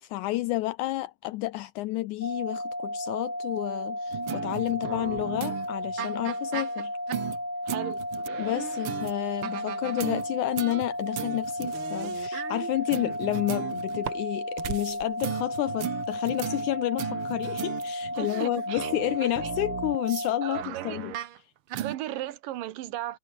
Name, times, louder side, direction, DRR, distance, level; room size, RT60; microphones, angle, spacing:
voice 1, 0.0-6.9 7.7-7.8 8.4-21.1, left 18 dB, 80° left, 2.0 m, -30 dB
sound 1, 2.2-20.6, left 1 dB, 5° left, 3.7 m, -34 dB
sound 2, 4.1-7.4 7.7-9.1 9.4-10.9 11.2-14.1 14.6-20.3 20.5-21.4 21.7-21.9, right 11 dB, 65° right, 1.3 m, -36 dB
voice 2, 7.7-8.0 18.1-18.9 19.2-19.5 20.4-21.0 21.7-23.2, right 14 dB, 90° right, 2.9 m, -36 dB
omnidirectional pair, 3.8 m